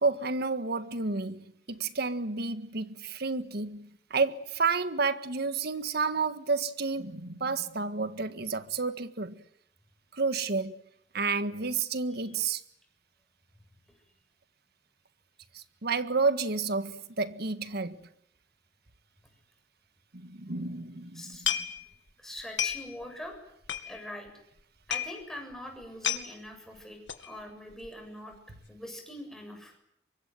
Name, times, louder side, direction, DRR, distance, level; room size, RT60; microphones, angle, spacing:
voice 1, 0.0-9.4 10.1-10.8 11.1-12.6 15.5-18.0 20.1-21.5, right 4 dB, 60° right, 1.7 m, -30 dB
voice 2, 21.1-21.6 22.2-23.4 23.8-24.3 24.9-28.4 28.7-29.7, left 1 dB, ahead, 7.4 m, -43 dB
sound 1, 21.3-22.1 22.4-23.0 23.3-23.4 23.6-24.3 24.6-24.7 24.9-25.2 25.5-25.6 25.8-26.3 27.1-27.3 27.7-28.0 28.3-28.4, left 9 dB, 85° left, 2.4 m, -32 dB
24.5 x 23.0 x 9.4 m
head